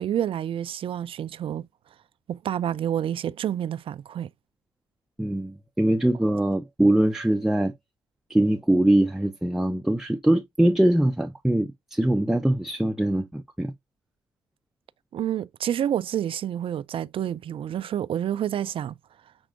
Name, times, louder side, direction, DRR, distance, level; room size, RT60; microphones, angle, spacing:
voice 1, 0.0-1.7 2.3-4.3 15.1-19.0, right 10 dB, 55° right, 0.4 m, -28 dB
voice 2, 5.2-7.7 8.3-13.7, right 1 dB, 5° right, 0.6 m, -22 dB
6.1 x 3.4 x 2.5 m
hypercardioid pair, 45°, 11 cm